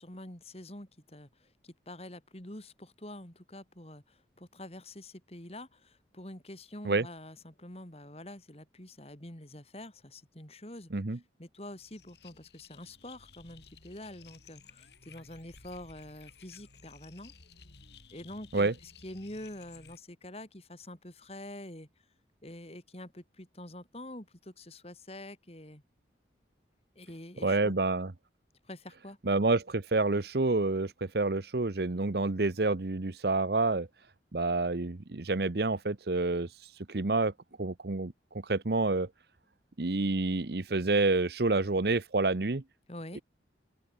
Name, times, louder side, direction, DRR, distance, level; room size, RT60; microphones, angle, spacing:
voice 1, 0.0-17.3 18.1-21.9 22.4-25.8 27.0-27.7 28.6-29.2 42.9-43.2, left 1 dB, 35° left, 3.5 m, -46 dB
sound 1, 11.6-20.0, left 5 dB, 70° left, 3.5 m, -56 dB
voice 2, 27.4-28.1 29.2-33.9 34.3-36.5 36.9-37.3 37.6-38.1 38.4-39.1 39.8-42.6, right 3 dB, 60° right, 0.9 m, -28 dB
open air
head